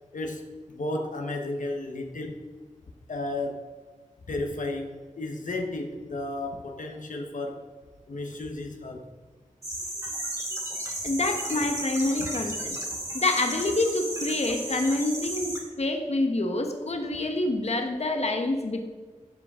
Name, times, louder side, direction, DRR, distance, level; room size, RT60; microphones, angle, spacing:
voice 1, 0.1-2.4 3.1-3.6 4.3-7.6 8.1-9.0 12.2-12.3, left 2 dB, 80° left, 2 dB, 1.2 m, -33 dB
sound 1, 9.6-15.6, right 1 dB, 25° right, 3.1 m, -34 dB
voice 2, 11.0-12.8 13.1-18.8, left 2 dB, 55° left, 4 dB, 1.2 m, -27 dB
12.5 x 7.6 x 3.7 m, 1.4 s
wide cardioid pair, 65°, 13 cm